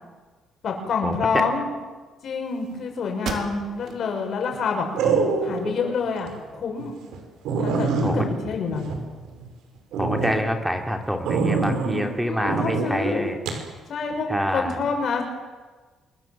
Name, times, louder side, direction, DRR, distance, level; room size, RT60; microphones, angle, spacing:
voice 1, 0.6-1.7 2.2-4.9 5.4-6.9 7.6-7.9 8.1-8.9 12.2-13.2 13.9-14.3 14.5-15.2, left 5 dB, 55° left, 2 dB, 6.8 m, -27 dB
sound 1, 3.2-4.0 4.5-4.6 5.1-6.0, right 6 dB, 65° right, 3.7 m, -35 dB
sound 2, 3.4-3.8 5.0-5.7 6.2-6.3 6.8-6.9 7.1-7.2 7.5-9.5 9.9-10.3 11.3-12.1 12.5-12.9 13.5-13.6, right 4 dB, 85° right, 5.4 m, -24 dB
voice 2, 10.0-13.4 14.3-14.8, equal, 5° right, 4 dB, 3.1 m, -26 dB
27.0 x 21.5 x 7.7 m, 1.4 s
cardioid pair, 110°, 0 cm